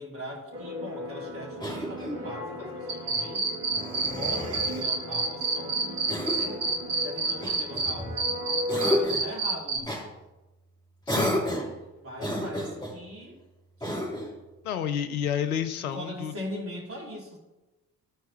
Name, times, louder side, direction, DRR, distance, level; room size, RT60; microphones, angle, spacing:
voice 1, 0.0-3.5 4.0-8.2 8.7-10.1 11.5-11.7 12.0-13.4 13.8-14.0 15.9-17.4, equal, 30° right, -4 dB, 2.6 m, -40 dB
sound 1, 0.5-9.1, left 1 dB, 85° right, 1.1 m, -37 dB
Cough, 1.6-2.4 3.7-4.9 6.1-6.6 7.4-8.2 8.7-9.3 9.8-10.1 11.1-11.8 12.2-13.0 13.8-14.4, equal, 10° left, 2.7 m, -31 dB
sound 2, 2.9-7.9 8.2-9.8, right 4 dB, 65° right, 1.4 m, -27 dB
voice 2, 14.6-16.3, left 9 dB, 80° left, 9 dB, 0.6 m, -30 dB
13.5 x 4.6 x 3.2 m, 1.0 s
figure-of-eight pair, 40°, 44 cm